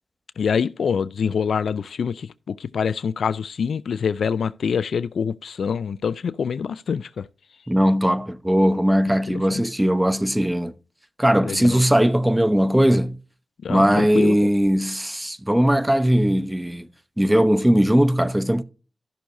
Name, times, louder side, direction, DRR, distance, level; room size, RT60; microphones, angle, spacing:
voice 1, 0.4-7.3 9.5-9.6 11.5-11.8 13.6-14.5, left 6 dB, 75° left, 0.3 m, -25 dB
voice 2, 7.7-10.7 11.2-13.2 13.7-16.9 17.2-18.6, equal, 10° right, 0.8 m, -19 dB
13.5 x 6.4 x 2.6 m
cardioid pair, 45°, 0 cm